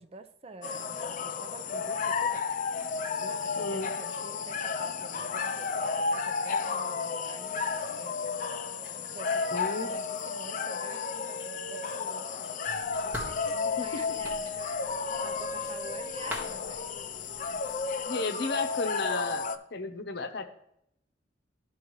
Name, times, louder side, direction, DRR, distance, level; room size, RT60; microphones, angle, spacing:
voice 1, 0.0-2.5 3.2-8.2 9.1-12.3 12.9-14.7 15.2-17.0, right 3 dB, 35° right, 9 dB, 0.4 m, -47 dB
sound 1, 0.6-19.6, left 5 dB, 45° left, 0.4 m, -32 dB
Drip, 2.5-4.8 5.1-5.8 6.2-6.3 6.6-7.4 7.8-8.4 8.8-10.0 10.3-13.1 13.4-15.0, left 1 dB, 25° left, 3.1 m, -58 dB
voice 2, 3.6-3.9 9.5-10.0 13.8-13.9 18.1-20.4, left 3 dB, 60° left, 7 dB, 0.8 m, -33 dB
sound 2, 12.6-18.0, equal, 10° right, 1.6 m, -45 dB
12.5 x 4.7 x 3.1 m, 0.76 s
head